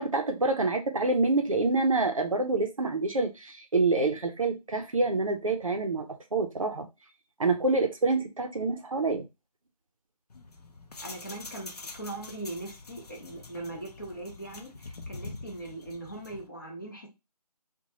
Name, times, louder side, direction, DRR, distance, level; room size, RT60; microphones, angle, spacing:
voice 1, 0.0-6.9 7.4-9.3, right 3 dB, 55° right, 0.6 m, -27 dB
sound 1, 10.3-16.5, left 3 dB, 65° left, 0.6 m, -45 dB
voice 2, 11.0-17.1, right 2 dB, 30° left, 0.7 m, -40 dB
2.7 x 2.2 x 2.9 m
figure-of-eight pair, 170°, 21 cm